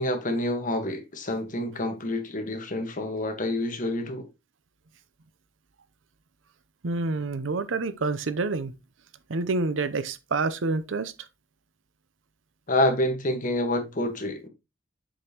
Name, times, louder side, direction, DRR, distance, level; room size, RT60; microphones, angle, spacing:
voice 1, 0.0-4.3 12.7-14.5, left 1 dB, 45° left, 1.4 m, -27 dB
voice 2, 6.8-8.7 9.3-11.1, right 3 dB, 90° right, 0.7 m, -28 dB
7.3 x 5.3 x 2.9 m
head